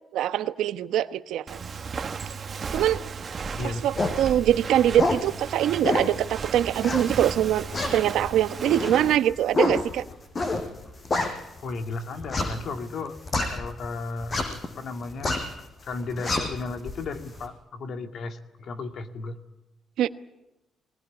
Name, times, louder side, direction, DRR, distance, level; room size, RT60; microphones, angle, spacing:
voice 1, 0.1-1.6 2.7-3.0 3.6-7.7 7.9-10.0 20.0-20.1, right 11 dB, 85° right, 11 dB, 1.0 m, -23 dB
Walk footsteps, 1.5-9.2, right 5 dB, 45° right, 1.4 m, -35 dB
voice 2, 3.6-3.9 11.6-13.2 13.5-15.4 15.8-19.4, left 3 dB, 60° left, 6 dB, 2.2 m, -34 dB
sound 1, 4.0-4.2 4.7-5.3 5.8-6.2 6.8-7.3 7.7-11.7 12.2-13.9 14.2-14.7 15.0-15.5 15.9-17.4, left 2 dB, 40° left, 5.4 m, -27 dB
22.5 x 19.5 x 9.9 m, 0.99 s
cardioid pair, 90°, 0 cm